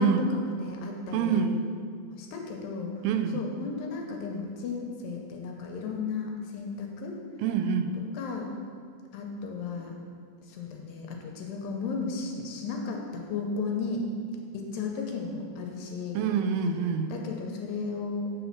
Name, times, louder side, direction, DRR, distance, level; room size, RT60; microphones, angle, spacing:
voice 1, 0.0-1.5 2.1-3.0 3.3-7.2 8.1-8.5 9.1-10.0 10.5-14.1 14.5-16.2 17.1-18.3, left 4 dB, 80° left, 1 dB, 2.3 m, -34 dB
voice 2, 1.1-1.6 3.0-3.4 7.4-7.9 16.2-17.1, right 6 dB, 85° right, 7 dB, 2.4 m, -26 dB
7.7 x 4.1 x 5.8 m, 2.1 s
omnidirectional pair, 4.3 m